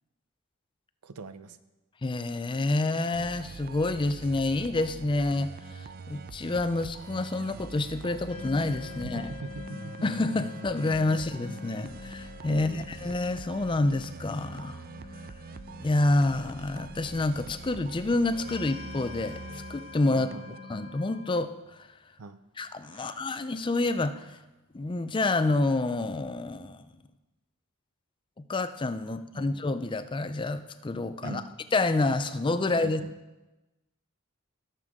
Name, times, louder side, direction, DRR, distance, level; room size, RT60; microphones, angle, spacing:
voice 1, 1.0-1.6 9.0-9.9 11.1-11.2 12.5-12.8 20.1-20.6 22.2-22.4 22.9-23.2 29.3-29.5 31.2-31.5 32.8-33.1, right 3 dB, 85° right, 12 dB, 0.6 m, -41 dB
voice 2, 2.0-9.2 10.0-14.8 15.8-20.3 20.7-21.5 22.6-24.4 24.7-26.8 28.5-31.4 31.7-33.0, left 2 dB, 20° left, 11 dB, 0.4 m, -28 dB
sound 1, 3.1-20.6, right 5 dB, 40° right, 0.4 m, -45 dB
sound 2, 8.3-21.3, left 5 dB, 85° left, 2.2 m, -45 dB
17.5 x 6.8 x 3.7 m, 1.1 s
head